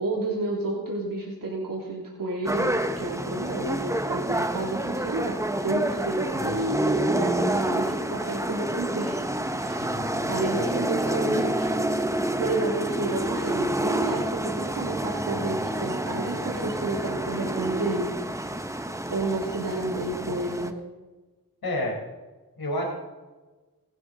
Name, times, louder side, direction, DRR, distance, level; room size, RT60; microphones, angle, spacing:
voice 1, 0.0-9.2 9.5-9.9 10.3-11.8 12.4-18.2 19.1-20.7, right 2 dB, 65° right, -4 dB, 2.8 m, -30 dB
sound 1, 2.4-20.7, right 1 dB, 10° right, 1.0 m, -28 dB
voice 2, 9.6-11.6 21.6-21.9 22.6-22.8, left 1 dB, 90° left, -1 dB, 4.4 m, -33 dB
20.0 x 12.0 x 4.0 m, 1.2 s
wide cardioid pair, 100°, 36 cm